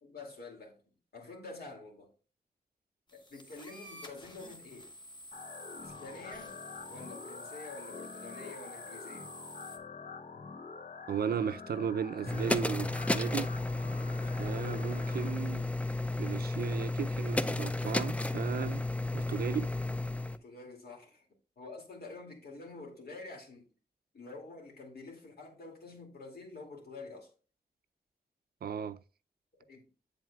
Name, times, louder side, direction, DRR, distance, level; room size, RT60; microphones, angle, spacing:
voice 1, 0.0-0.8 1.1-2.1 3.1-4.9 5.8-6.5 6.9-9.3 20.2-21.3 21.6-23.7 24.1-27.3 29.7-29.9, left 3 dB, 75° left, 2.4 m, -48 dB
sound 1, 3.1-9.8, left 1 dB, 30° left, 1.2 m, -50 dB
sound 2, 5.3-15.3, left 4 dB, 55° left, 0.7 m, -47 dB
voice 2, 11.1-13.5 14.4-15.7 16.2-18.8 19.1-19.7 28.6-29.0, right 8 dB, 75° right, 0.4 m, -35 dB
sound 3, 12.3-20.4, left 2 dB, 10° left, 0.3 m, -33 dB
8.0 x 7.5 x 2.3 m
wide cardioid pair, 105°, 16 cm